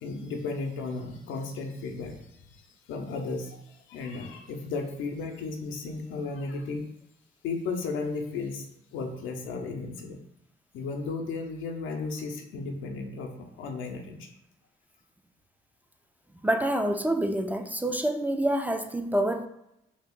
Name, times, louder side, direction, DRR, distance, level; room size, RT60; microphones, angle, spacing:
voice 1, 0.0-2.5 2.9-6.9 7.4-8.7 8.9-10.2 10.7-14.3, left 4 dB, 85° left, 3 dB, 0.6 m, -34 dB
voice 2, 16.4-19.5, right 1 dB, 10° right, 5 dB, 0.3 m, -27 dB
2.8 x 2.5 x 3.6 m, 0.84 s
cardioid pair, 90°, 20 cm